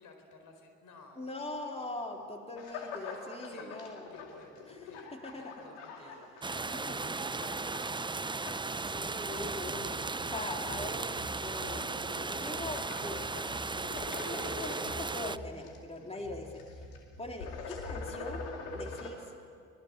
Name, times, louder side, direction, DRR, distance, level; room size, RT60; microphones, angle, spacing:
voice 1, 0.0-2.3 2.7-3.0 3.5-3.8 4.1-6.3 6.6-8.5 14.2-14.4, left 3 dB, 60° left, 5 dB, 4.5 m, -56 dB
voice 2, 1.2-4.1 4.7-4.8 5.1-5.5 6.5-7.1 8.8-10.0 10.3-13.3 14.2-16.5 17.2-18.4 18.7-19.3, left 2 dB, 20° left, 2 dB, 3.6 m, -42 dB
sound 1, 2.6-7.0 7.3-8.0 8.3-19.1, left 3 dB, 85° left, 2.6 m, -44 dB
sound 2, 6.4-15.4, right 3 dB, 15° right, 0.6 m, -36 dB
25.0 x 19.5 x 8.8 m, 2.4 s
hypercardioid pair, 50°, 34 cm